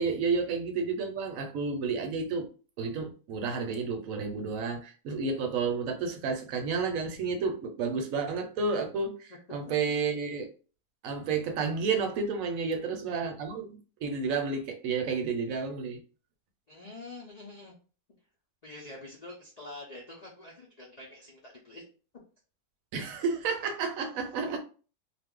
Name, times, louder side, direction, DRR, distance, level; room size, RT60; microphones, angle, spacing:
voice 1, 0.0-2.4 2.8-10.5 11.0-16.0 22.9-24.6, right 4 dB, 70° right, 4 dB, 1.0 m, -31 dB
voice 2, 16.7-17.7 18.6-21.8, left 2 dB, 70° left, -2 dB, 0.3 m, -46 dB
2.5 x 2.1 x 3.6 m, 0.37 s
omnidirectional pair, 1.6 m